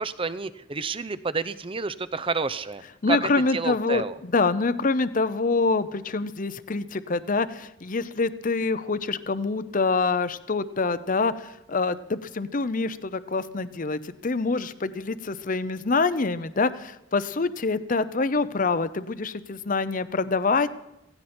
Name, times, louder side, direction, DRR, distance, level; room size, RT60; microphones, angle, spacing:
voice 1, 0.0-2.8 3.1-4.1, right 4 dB, 25° right, 14 dB, 0.7 m, -29 dB
voice 2, 3.0-20.7, left 3 dB, 40° left, 14 dB, 0.7 m, -26 dB
16.5 x 16.5 x 4.4 m, 0.88 s
head